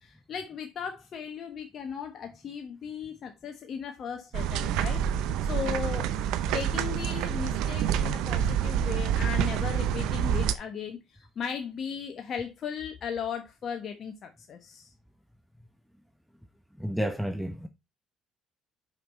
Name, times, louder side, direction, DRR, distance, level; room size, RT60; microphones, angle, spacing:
voice 1, 0.0-5.0 5.4-6.1 6.4-14.9, left 7 dB, 55° left, 1.1 m, -37 dB
sound 1, 4.3-10.5, right 9 dB, 75° right, 0.7 m, -27 dB
voice 2, 16.8-17.7, equal, ahead, 1.0 m, -30 dB
5.6 x 5.5 x 4.2 m
hypercardioid pair, 65°, 0 cm